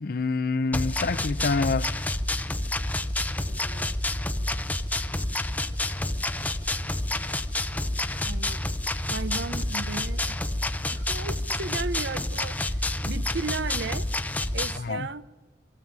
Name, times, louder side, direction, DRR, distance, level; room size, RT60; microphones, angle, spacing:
voice 1, 0.0-1.9 14.8-15.1, left 4 dB, 55° left, 0.5 m, -27 dB
sound 1, 0.7-14.8, left 1 dB, 10° left, 0.6 m, -29 dB
voice 2, 3.5-4.0 8.2-8.6 9.1-10.4 10.7-14.1 14.5-15.3, right 3 dB, 75° right, 0.7 m, -35 dB
23.5 x 13.0 x 8.7 m
head